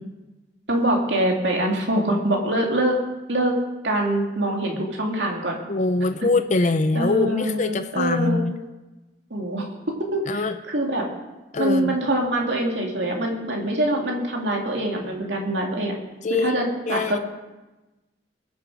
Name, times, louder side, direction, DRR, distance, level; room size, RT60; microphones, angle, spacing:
voice 1, 0.7-3.0 3.3-3.6 3.8-5.6 6.9-8.4 9.3-9.6 10.1-10.4 10.7-11.1 11.6-15.9 16.3-17.2, right 1 dB, 80° right, 0 dB, 2.6 m, -24 dB
voice 2, 5.7-8.6 10.3-10.6 11.5-12.0 16.2-16.5 16.9-17.2, left 3 dB, 45° left, 8 dB, 0.6 m, -23 dB
21.5 x 7.8 x 5.0 m, 1.1 s
head